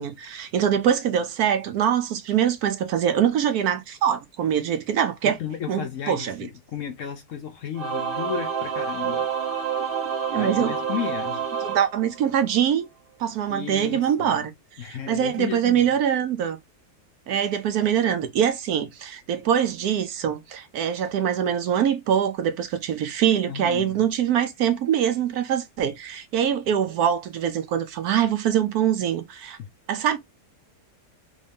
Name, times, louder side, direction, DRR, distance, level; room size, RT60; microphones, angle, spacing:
voice 1, 0.0-5.4 5.7-6.5 10.3-10.8 11.6-12.9 13.2-14.5 14.9-16.6 17.3-29.6 29.9-30.2, right 9 dB, 70° right, 1.1 m, -23 dB
voice 2, 5.2-9.3 10.3-11.4 13.5-14.4 14.8-16.0 23.5-24.1 29.6-29.7, left 8 dB, 60° left, 0.8 m, -34 dB
Singing / Musical instrument, 7.7-12.6, right 6 dB, 45° right, 0.8 m, -28 dB
3.7 x 2.6 x 3.4 m
omnidirectional pair, 1.8 m